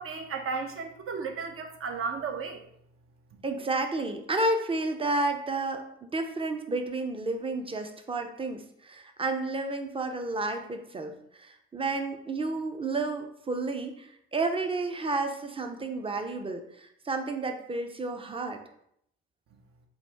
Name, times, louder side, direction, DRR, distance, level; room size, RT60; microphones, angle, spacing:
voice 1, 0.0-2.6, right 5 dB, 50° right, 5 dB, 0.8 m, -34 dB
voice 2, 3.4-18.6, right 2 dB, 20° right, 5 dB, 0.6 m, -31 dB
4.2 x 2.5 x 3.4 m, 0.72 s
hypercardioid pair, 60°, 29 cm